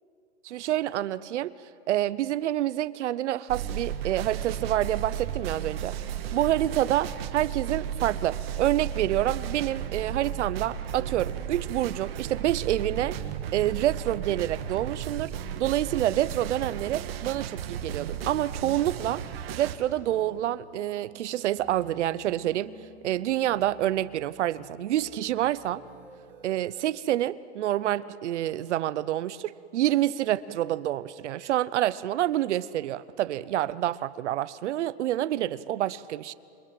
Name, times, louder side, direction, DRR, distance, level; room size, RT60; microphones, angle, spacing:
voice 1, 0.4-1.5 1.9-6.0 6.3-13.2 13.5-19.2 19.5-22.7 23.0-25.8 26.4-36.3, right 13 dB, 80° right, 16 dB, 0.8 m, -27 dB
sound 1, 3.5-19.8, right 9 dB, 55° right, 1.8 m, -34 dB
sound 2, 19.8-26.7, right 4 dB, 25° right, 6.7 m, -52 dB
28.0 x 22.0 x 7.7 m, 2.7 s
supercardioid pair, 160°, 35 cm